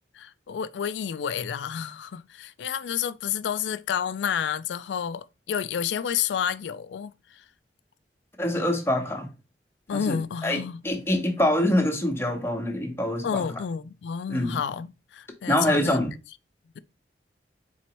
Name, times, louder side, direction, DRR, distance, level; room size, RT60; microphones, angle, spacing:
voice 1, 0.1-7.4 9.9-10.8 13.2-16.0, left 8 dB, 80° left, 0.4 m, -30 dB
voice 2, 8.4-9.3 9.9-13.4 14.3-14.6 15.5-16.1, left 1 dB, 15° left, 0.9 m, -25 dB
4.5 x 3.9 x 3.0 m
head